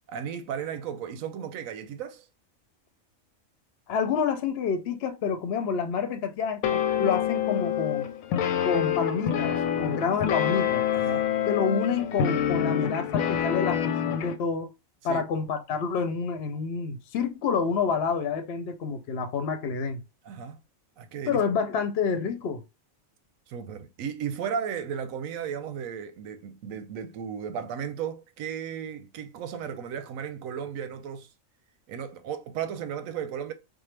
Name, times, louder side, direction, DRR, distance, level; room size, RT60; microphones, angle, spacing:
voice 1, 0.1-2.3 10.9-11.3 15.1-15.2 20.2-20.6 21.0-21.4 23.5-31.3 31.9-33.5, right 8 dB, 90° right, 1.0 m, -35 dB
voice 2, 3.9-8.1 8.6-10.8 11.5-14.7 15.0-20.0 21.3-22.6, left 6 dB, 60° left, 0.7 m, -28 dB
sound 1, 6.6-14.4, left 9 dB, 85° left, 1.0 m, -26 dB
4.5 x 2.1 x 3.2 m
omnidirectional pair, 1.4 m